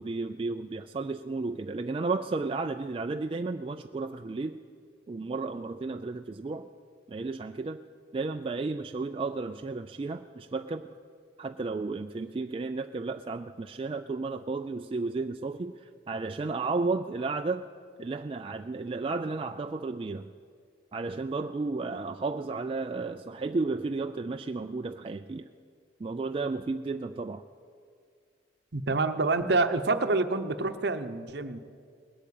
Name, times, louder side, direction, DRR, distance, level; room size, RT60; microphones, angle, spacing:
voice 1, 0.0-4.6 5.1-6.7 7.1-7.8 8.1-10.9 11.4-17.6 18.0-20.3 20.9-25.5 26.0-27.4, right 3 dB, 30° right, 6 dB, 0.3 m, -33 dB
voice 2, 28.7-31.6, right 3 dB, 60° right, 9 dB, 0.8 m, -27 dB
19.5 x 8.4 x 8.5 m, 2.2 s
head